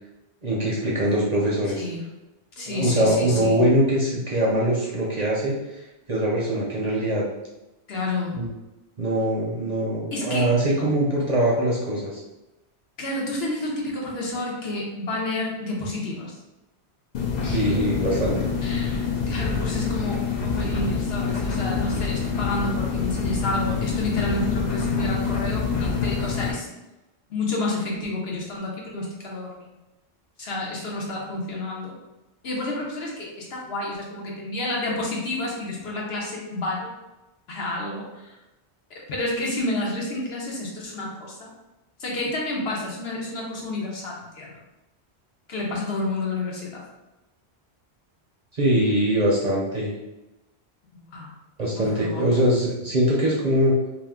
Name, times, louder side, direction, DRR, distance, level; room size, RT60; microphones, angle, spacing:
voice 1, 0.4-1.8 2.7-5.8 6.1-7.2 8.3-8.4 9.0-12.2 17.5-18.4 48.5-49.9 51.6-53.7, right 1 dB, 50° right, -4 dB, 0.6 m, -22 dB
voice 2, 2.6-3.6 7.9-8.3 10.1-10.5 13.0-16.4 17.4-17.7 18.6-26.7 27.3-29.7 30.4-32.0 32.4-36.9 37.5-38.3 38.9-41.5 42.0-44.6 45.5-46.8 51.1-51.3 51.7-52.2, left 2 dB, 70° left, -2 dB, 1.0 m, -30 dB
sound 1, 17.1-26.5, left 5 dB, 55° left, 0.5 m, -26 dB
2.6 x 2.4 x 3.5 m, 1.0 s
omnidirectional pair, 1.1 m